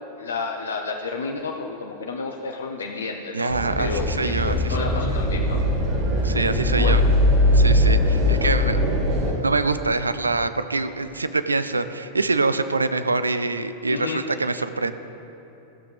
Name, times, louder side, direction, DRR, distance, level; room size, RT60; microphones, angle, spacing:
voice 1, 0.2-5.6 6.7-7.0 8.2-8.5 10.2-10.3 13.8-14.2, left 4 dB, 70° left, 2 dB, 0.5 m, -31 dB
voice 2, 3.3-5.1 6.2-7.0 7.5-8.8 9.2-14.9, right 3 dB, 80° right, 12 dB, 0.4 m, -25 dB
sound 1, 3.5-9.3, left 1 dB, 40° right, 2.2 m, -20 dB
15.0 x 6.6 x 3.4 m, 3.0 s
figure-of-eight pair, 90°, 0 cm